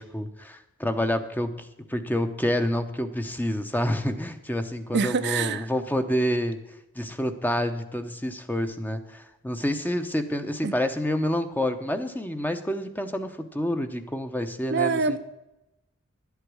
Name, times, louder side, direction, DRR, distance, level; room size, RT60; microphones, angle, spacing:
voice 1, 0.0-6.6 6.9-15.2, left 1 dB, 10° left, 8 dB, 0.8 m, -28 dB
voice 2, 4.9-5.7 10.6-10.7 14.7-15.2, right 5 dB, 55° right, 10 dB, 0.6 m, -25 dB
11.5 x 8.2 x 6.2 m, 0.94 s
head